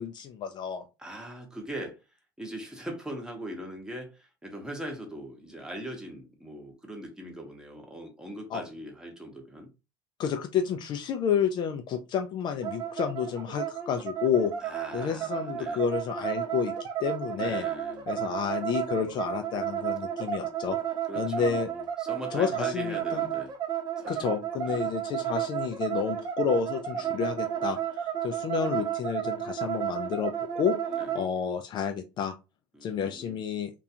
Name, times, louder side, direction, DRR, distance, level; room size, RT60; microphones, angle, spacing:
voice 1, 0.0-0.8 8.5-8.6 10.2-14.5 14.9-16.7 17.0-17.6 18.1-20.8 21.2-21.7 22.3-23.2 24.1-30.8 31.1-32.3 32.8-33.7, left 7 dB, 40° left, 0.3 m, -30 dB
voice 2, 1.0-2.0 2.4-9.7 14.6-15.9 17.4-18.1 18.9-19.2 21.1-23.6 24.0-24.3 24.7-24.9 26.9-27.4 30.9-31.1 32.7-33.4, equal, 5° right, 0.8 m, -41 dB
sound 1, 12.6-31.3, right 10 dB, 40° right, 0.5 m, -32 dB
2.4 x 2.3 x 2.7 m
supercardioid pair, 100°, 11 cm